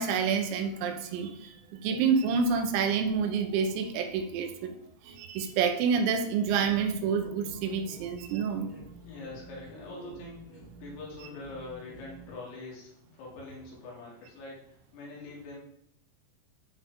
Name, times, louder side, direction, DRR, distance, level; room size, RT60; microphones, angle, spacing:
voice 1, 0.0-1.6 1.8-4.7 5.1-8.7, right 6 dB, 90° right, 5 dB, 3.7 m, -28 dB
sound 1, 6.4-12.4, right 1 dB, 25° left, 1.8 m, -49 dB
voice 2, 9.1-15.6, left 2 dB, 85° left, -4 dB, 5.4 m, -44 dB
12.5 x 5.3 x 3.7 m, 0.72 s
omnidirectional pair, 6.0 m